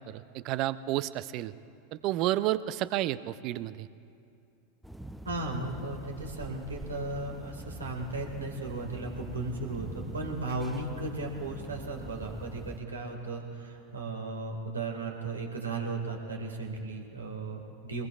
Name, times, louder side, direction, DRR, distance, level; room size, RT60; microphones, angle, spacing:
voice 1, 0.1-1.5 1.9-3.9, right 14 dB, 50° right, 15 dB, 0.5 m, -31 dB
sound 1, 4.8-12.8, right 1 dB, ahead, 0.6 m, -44 dB
voice 2, 5.3-18.1, right 2 dB, 85° right, 1 dB, 1.9 m, -36 dB
23.5 x 20.5 x 2.4 m, 2.5 s
hypercardioid pair, 90°, 0 cm